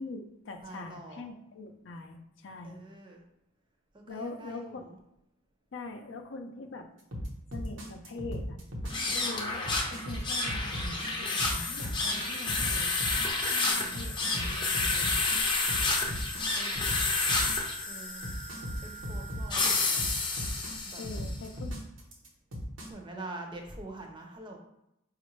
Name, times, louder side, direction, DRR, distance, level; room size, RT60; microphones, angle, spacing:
voice 1, 0.0-2.8 4.1-4.8 5.7-6.9 7.5-8.6 9.1-12.9 13.4-15.3 21.0-21.8, left 3 dB, 70° left, 5 dB, 0.5 m, -43 dB
voice 2, 0.6-1.2 2.6-3.2 3.9-5.0 8.9-9.3 13.4-14.1 16.5-16.9 17.9-18.3 18.8-20.1 20.8-21.0 22.9-24.6, right 2 dB, 25° right, 1 dB, 0.6 m, -45 dB
sound 1, 7.1-22.9, equal, 75° right, 1.0 m, -37 dB
sound 2, 8.8-21.3, left 3 dB, 25° left, 0.6 m, -30 dB
5.0 x 2.4 x 3.1 m, 0.83 s
head